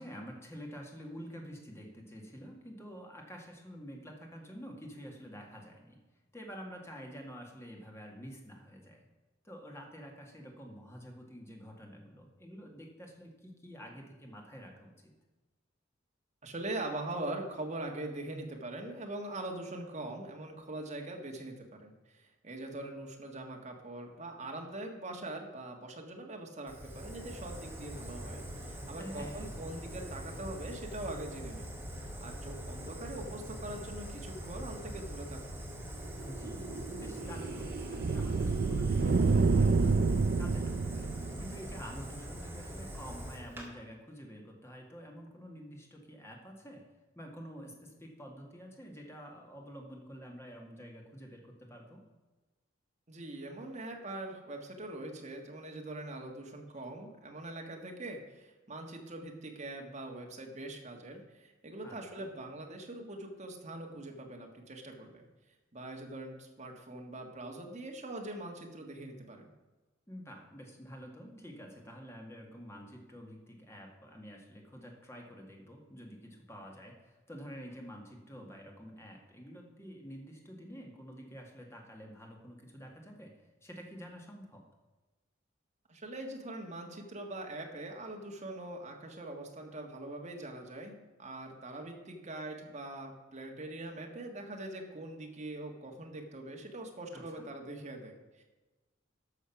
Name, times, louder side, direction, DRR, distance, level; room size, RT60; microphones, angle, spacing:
voice 1, 0.0-6.0 6.3-9.1 9.4-15.1 29.0-29.6 36.2-46.8 47.2-52.0 61.8-62.2 70.1-83.3 83.6-84.7 97.1-97.5, equal, 15° left, 1 dB, 1.8 m, -48 dB
voice 2, 16.4-31.7 32.0-35.6 53.1-65.2 65.7-69.5 85.9-98.4, right 2 dB, 35° right, 2 dB, 1.6 m, -42 dB
Fire, 26.7-43.7, equal, 10° right, 2.0 m, -43 dB
sound 1, 36.2-41.8, right 4 dB, 50° right, 0.4 m, -29 dB
12.5 x 6.4 x 5.8 m, 1.2 s
head